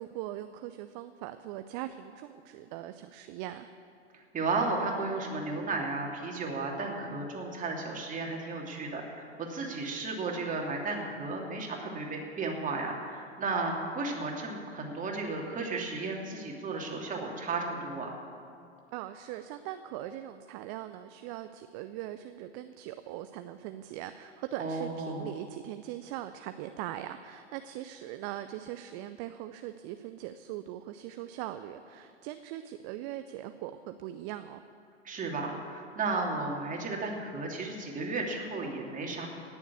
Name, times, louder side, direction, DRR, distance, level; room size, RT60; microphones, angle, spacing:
voice 1, 0.0-3.7 18.9-34.6, right 13 dB, 35° right, 10 dB, 0.6 m, -41 dB
voice 2, 4.1-18.2 24.6-25.3 35.0-39.3, right 3 dB, 20° right, 0 dB, 2.7 m, -34 dB
17.5 x 7.2 x 8.4 m, 2.4 s
figure-of-eight pair, 95°, 36 cm